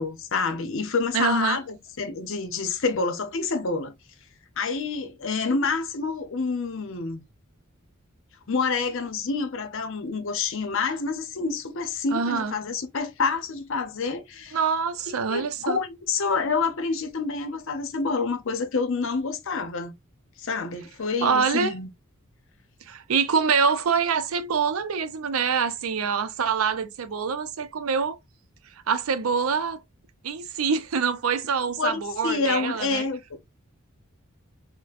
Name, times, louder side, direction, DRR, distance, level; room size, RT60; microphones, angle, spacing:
voice 1, 0.0-3.9 4.6-7.2 8.5-14.6 15.1-19.9 20.4-21.9 31.8-33.4, left 4 dB, 65° left, 0.7 m, -28 dB
voice 2, 1.1-1.6 12.1-12.5 14.5-15.8 21.2-21.8 22.8-28.2 28.9-29.8 30.2-33.1, right 6 dB, 90° right, 0.5 m, -25 dB
4.1 x 2.1 x 2.4 m
head